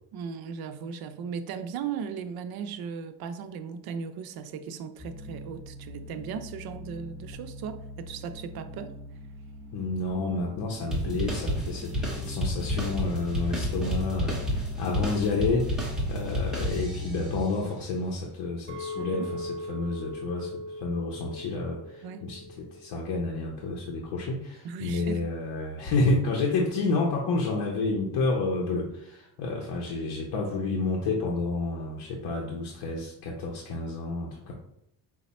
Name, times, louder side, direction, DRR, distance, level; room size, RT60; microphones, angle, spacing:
voice 1, 0.1-9.0 19.0-19.3 22.0-22.3 24.6-25.3, right 6 dB, 60° right, 9 dB, 0.5 m, -37 dB
sound 1, 5.0-17.4, left 1 dB, 20° left, 1.1 m, -39 dB
voice 2, 9.7-34.5, left 3 dB, 65° left, -1 dB, 0.8 m, -30 dB
sound 2, 10.9-17.3, right 1 dB, ahead, 0.9 m, -31 dB
Chink clink, 18.7-23.0 23.4-23.8, left 2 dB, 30° right, 0.9 m, -39 dB
4.8 x 2.1 x 4.1 m, 0.77 s
cardioid pair, 150°, 42 cm